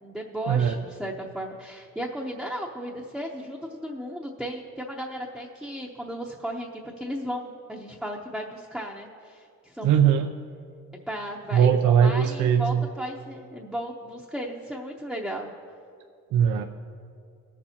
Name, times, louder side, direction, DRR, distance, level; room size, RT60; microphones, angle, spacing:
voice 1, 0.0-6.7 7.0-10.0 11.1-15.5, equal, ahead, -2 dB, 0.7 m, -35 dB
voice 2, 9.8-10.3 11.5-12.8 16.3-16.6, right 8 dB, 80° right, 6 dB, 0.5 m, -20 dB
20.5 x 7.1 x 2.8 m, 2.4 s
cardioid pair, 90°, 30 cm